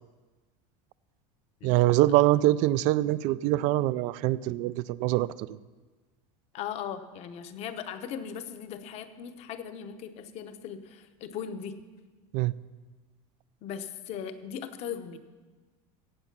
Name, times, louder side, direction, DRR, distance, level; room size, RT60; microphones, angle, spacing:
voice 1, 1.6-5.5 12.3-12.5, right 16 dB, 45° right, 19 dB, 0.4 m, -24 dB
voice 2, 6.5-11.8 13.6-15.2, left 8 dB, 40° left, 10 dB, 0.8 m, -38 dB
16.5 x 7.7 x 5.9 m, 1.3 s
supercardioid pair, 160°, 17 cm